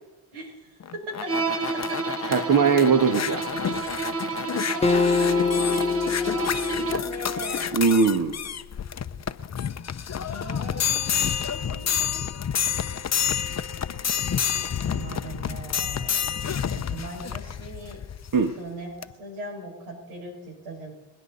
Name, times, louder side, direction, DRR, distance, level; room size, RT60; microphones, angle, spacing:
voice 1, 0.3-1.3 1.7-2.3 4.0-7.8 10.2-12.0 14.5-16.3 16.7-18.0 18.6-20.9, right 2 dB, 85° right, 0 dB, 6.1 m, -38 dB
sound 1, 0.8-18.5 19.0-19.1, left 8 dB, 30° left, 0.8 m, -29 dB
Bowed string instrument, 1.3-7.2, right 4 dB, 30° right, 1.4 m, -31 dB
voice 2, 2.3-3.4 7.7-8.4 18.3-18.5, right 5 dB, 45° right, 5 dB, 1.6 m, -20 dB
Acoustic guitar, 4.8-8.2, left 5 dB, 15° left, 0.4 m, -26 dB
27.0 x 9.9 x 4.1 m, 1.1 s
supercardioid pair, 60°, 50 cm